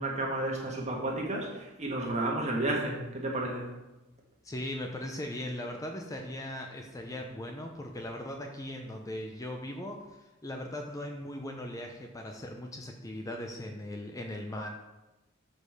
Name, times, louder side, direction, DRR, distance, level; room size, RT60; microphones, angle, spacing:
voice 1, 0.0-3.7, right 2 dB, 35° right, -1 dB, 1.5 m, -32 dB
voice 2, 4.4-14.7, left 1 dB, 15° left, 3 dB, 0.5 m, -39 dB
6.2 x 5.2 x 4.9 m, 1.0 s
head